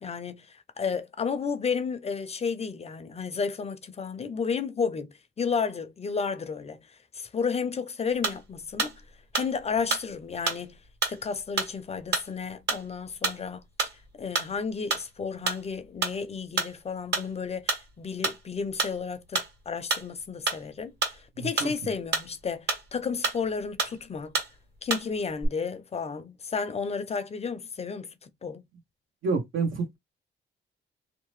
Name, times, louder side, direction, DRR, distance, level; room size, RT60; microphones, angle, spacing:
voice 1, 0.0-5.1 5.4-6.8 7.1-9.0 9.3-10.8 11.1-13.6 14.2-17.7 18.0-24.4 24.8-28.1 28.4-28.6, left 5 dB, 30° left, 0.5 m, -32 dB
sound 1, 8.2-8.5 8.8-9.0 9.3-10.1 10.5-10.7 11.0-11.2 11.6-11.7 12.1-12.3 12.7-12.9 13.2-13.4 13.8-14.0 14.4-14.6 14.9-15.1 15.5-15.6 16.0-16.2 16.6-16.7 17.1-17.3 17.7-17.9 18.2-18.4 18.8-19.0 19.3-19.5 19.9-20.1 20.5-20.6 21.0-21.7 22.1-22.3 22.7-22.9 23.2-23.5 23.8-24.0 24.3-24.5 24.9-25.1 25.3-25.5, right 4 dB, 60° right, 1.5 m, -28 dB
voice 2, 21.4-21.7 29.2-30.0, right 4 dB, 75° right, 1.1 m, -28 dB
2.8 x 2.1 x 3.1 m
cardioid pair, 90°, 20 cm